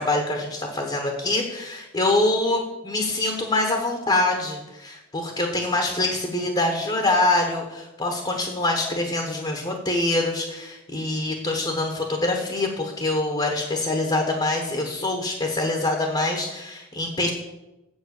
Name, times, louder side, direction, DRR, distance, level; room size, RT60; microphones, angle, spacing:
voice 1, 0.0-17.3, left 2 dB, 25° left, 2 dB, 1.0 m, -25 dB
7.5 x 7.3 x 6.4 m, 0.99 s
head